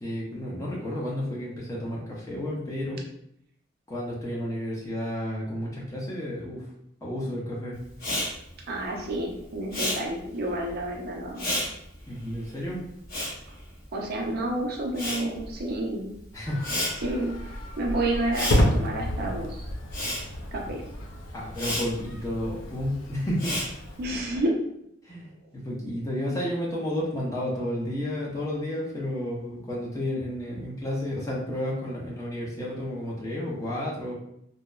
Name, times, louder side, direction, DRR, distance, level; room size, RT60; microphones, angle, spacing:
voice 1, 0.0-3.0 3.9-6.6 7.0-7.8 12.1-12.8 16.3-16.7 21.3-23.6 25.0-34.1, left 1 dB, 15° left, -5 dB, 0.6 m, -31 dB
Respiratory sounds, 7.9-14.4 14.7-24.1, left 1 dB, 55° left, 0.8 m, -33 dB
voice 2, 8.7-11.5 13.9-16.1 17.0-17.3 17.8-19.6 20.5-20.8 24.0-24.5, right 1 dB, 55° right, 0 dB, 0.5 m, -29 dB
sound 1, 16.5-24.4, left 1 dB, 70° left, 0.4 m, -31 dB
2.8 x 2.0 x 2.3 m, 0.75 s
head